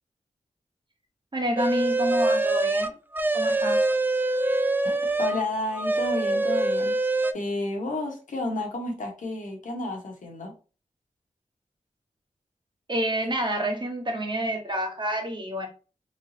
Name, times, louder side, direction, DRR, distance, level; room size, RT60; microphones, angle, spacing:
voice 1, 1.3-3.0 3.3-3.9 12.9-15.7, right 1 dB, 35° right, 1.1 m, -28 dB
sound 1, 1.6-5.4 5.7-7.3, right 2 dB, 15° right, 0.4 m, -24 dB
voice 2, 4.8-7.0 7.3-10.5, left 2 dB, 75° left, 1.2 m, -31 dB
3.4 x 3.2 x 2.8 m
wide cardioid pair, 70°, 13 cm